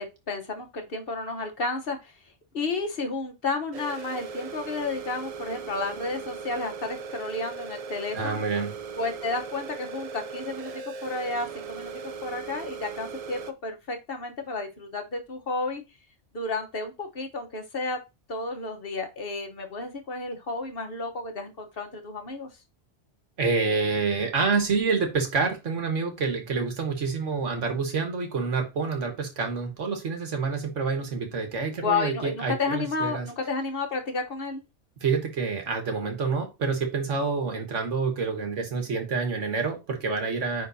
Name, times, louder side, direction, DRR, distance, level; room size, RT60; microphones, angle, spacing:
voice 1, 0.0-2.1 2.5-8.4 9.0-10.7 11.0-15.8 16.3-18.0 18.3-22.5 31.7-34.6, left 3 dB, 55° left, 5 dB, 1.2 m, -32 dB
sound 1, 3.7-13.5, right 5 dB, 55° right, 0.4 m, -38 dB
voice 2, 8.1-8.7 23.4-33.3 35.0-40.7, right 4 dB, 90° right, 4 dB, 1.7 m, -27 dB
9.6 x 3.8 x 2.7 m, 0.25 s
omnidirectional pair, 1.2 m